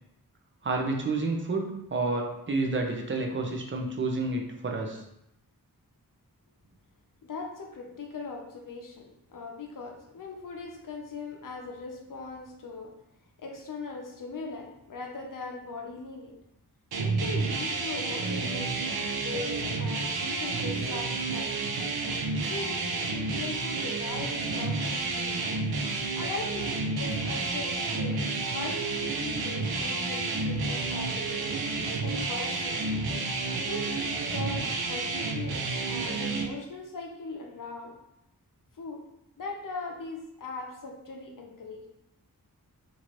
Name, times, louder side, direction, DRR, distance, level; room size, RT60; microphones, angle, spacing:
voice 1, 0.6-5.0, right 3 dB, 35° right, 1 dB, 0.6 m, -30 dB
voice 2, 7.2-12.9 13.4-16.4 17.0-21.6 22.4-25.8 26.1-31.5 32.0-32.9 33.7-34.0 34.3-37.9 38.8-39.0 39.4-41.9, left 3 dB, 60° left, 1 dB, 0.7 m, -40 dB
sound 1, 16.9-36.4, right 3 dB, 90° right, 0.5 m, -30 dB
3.0 x 2.6 x 2.9 m, 0.82 s
wide cardioid pair, 85°, 36 cm